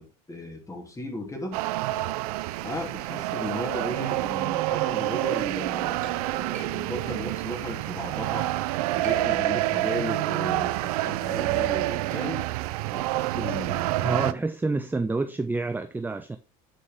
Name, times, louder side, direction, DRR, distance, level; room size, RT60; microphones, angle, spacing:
voice 1, 0.0-1.6 2.6-8.5 8.9-12.4 12.9-14.4, left 1 dB, 15° left, 3.0 m, -36 dB
sound 1, 1.5-14.3, right 17 dB, 85° right, 0.5 m, -28 dB
Chink clink, 6.0-8.4 8.8-9.8 10.2-14.3, right 5 dB, 45° right, 3.6 m, -48 dB
voice 2, 14.0-16.4, right 3 dB, 10° right, 0.6 m, -28 dB
9.7 x 5.5 x 3.6 m
supercardioid pair, 95°, 19 cm